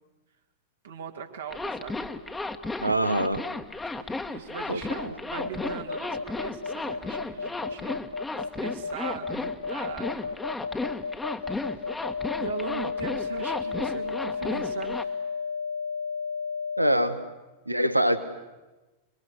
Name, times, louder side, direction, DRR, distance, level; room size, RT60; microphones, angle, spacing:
voice 1, 0.8-2.1 3.9-8.0 8.4-10.4 11.5-11.7 12.0-12.1 12.4-15.3, right 7 dB, 65° right, 2 dB, 2.5 m, -40 dB
Zipper (clothing), 1.5-15.0, left 3 dB, 10° left, 1.4 m, -34 dB
voice 2, 2.8-3.4 4.7-5.2 16.8-17.2 17.7-18.2, right 1 dB, 85° right, 11 dB, 1.4 m, -24 dB
sound 1, 5.4-17.1, left 5 dB, 80° left, 2.6 m, -32 dB
28.5 x 22.5 x 8.2 m, 1.1 s
figure-of-eight pair, 90°, 0 cm